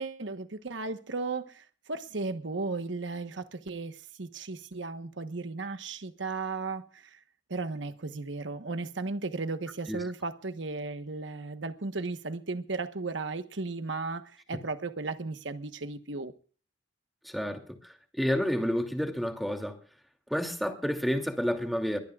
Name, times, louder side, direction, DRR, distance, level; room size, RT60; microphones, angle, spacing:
voice 1, 0.0-7.2 7.5-16.3, right 3 dB, 75° right, 1.2 m, -35 dB
voice 2, 17.2-19.8 20.3-22.0, equal, ahead, 2.6 m, -30 dB
23.0 x 17.0 x 2.4 m
head